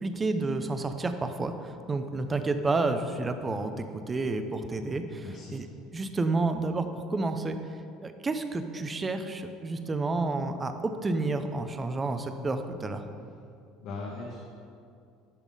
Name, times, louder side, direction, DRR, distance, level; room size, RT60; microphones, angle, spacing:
voice 1, 0.0-5.7 5.9-7.6 8.0-13.0, right 3 dB, 20° right, 8 dB, 0.5 m, -30 dB
voice 2, 5.2-5.6 13.8-14.4, left 3 dB, 65° left, -4 dB, 1.2 m, -38 dB
11.0 x 3.7 x 5.4 m, 2.4 s
cardioid pair, 130°, 0 cm